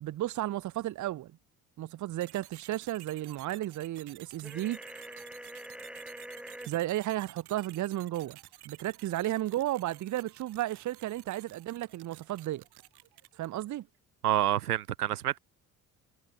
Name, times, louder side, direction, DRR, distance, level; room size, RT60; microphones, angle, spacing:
voice 1, 0.0-1.3 1.8-5.0 6.7-8.4 8.6-12.6 13.4-13.9, right 14 dB, 40° right, 0.8 m, -33 dB
sound 1, 2.2-13.8, right 16 dB, 60° right, 2.5 m, -53 dB
sound 2, 4.4-6.7, equal, ahead, 4.4 m, -44 dB
voice 2, 14.2-15.4, right 13 dB, 85° right, 1.0 m, -28 dB
figure-of-eight pair, 50°, 45 cm